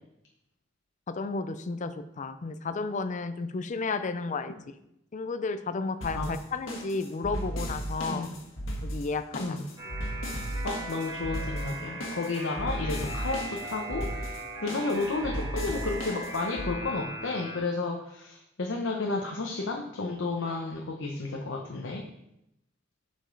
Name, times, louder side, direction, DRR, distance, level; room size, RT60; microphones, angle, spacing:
voice 1, 1.1-4.6 5.1-8.3 8.8-9.6, left 3 dB, 40° left, 11 dB, 0.5 m, -32 dB
sound 1, 6.0-16.7, equal, 85° left, 1.6 m, -36 dB
voice 2, 8.1-8.4 9.4-9.6 10.6-22.0, left 3 dB, 65° left, 1 dB, 0.8 m, -32 dB
sound 2, 9.8-17.6, right 1 dB, 25° right, 2.2 m, -39 dB
8.4 x 5.2 x 3.9 m, 0.81 s
head